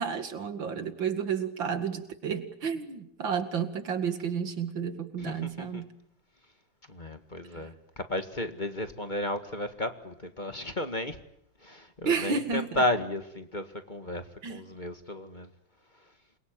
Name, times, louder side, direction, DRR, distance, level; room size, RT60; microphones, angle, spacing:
voice 1, 0.0-5.9 7.5-7.7 12.0-12.8 14.4-14.6, right 6 dB, 90° right, 2.9 m, -31 dB
voice 2, 5.3-5.8 6.9-11.2 11.6-14.2 14.5-15.5, left 1 dB, 25° left, 1.9 m, -33 dB
28.5 x 22.5 x 9.1 m
omnidirectional pair, 2.0 m